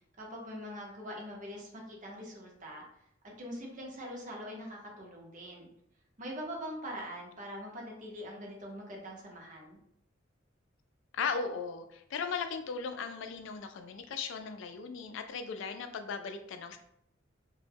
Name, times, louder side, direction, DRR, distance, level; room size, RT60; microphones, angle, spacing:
voice 1, 0.2-2.8 3.4-5.7 6.2-9.8, equal, 40° right, -1 dB, 0.6 m, -43 dB
voice 2, 11.1-16.8, left 5 dB, 70° left, 7 dB, 0.3 m, -37 dB
2.2 x 2.0 x 3.3 m, 0.73 s
head